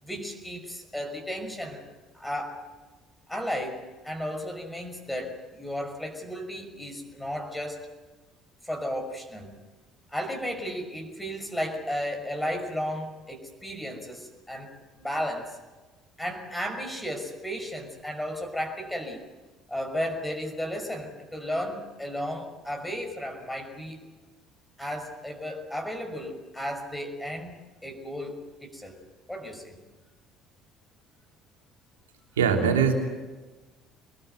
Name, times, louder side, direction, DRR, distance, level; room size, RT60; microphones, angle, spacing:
voice 1, 0.0-1.8 2.1-2.7 3.3-7.9 8.6-9.5 10.1-15.6 16.2-19.2 19.7-24.0 24.8-29.0 29.3-29.8, equal, 10° left, 3 dB, 5.8 m, -34 dB
voice 2, 32.4-32.9, right 7 dB, 85° right, 2 dB, 3.1 m, -21 dB
25.5 x 20.0 x 8.1 m, 1.2 s
hypercardioid pair, 60°, 0 cm